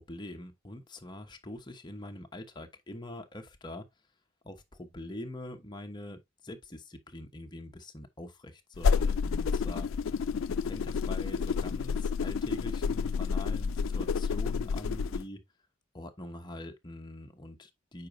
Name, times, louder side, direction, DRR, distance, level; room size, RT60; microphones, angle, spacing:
voice 1, 0.0-3.9 4.4-9.9 10.6-15.4 15.9-18.1, left 1 dB, 20° left, 1.0 m, -44 dB
sound 1, 8.8-15.2, left 5 dB, 85° left, 0.4 m, -30 dB
8.4 x 5.1 x 2.6 m
head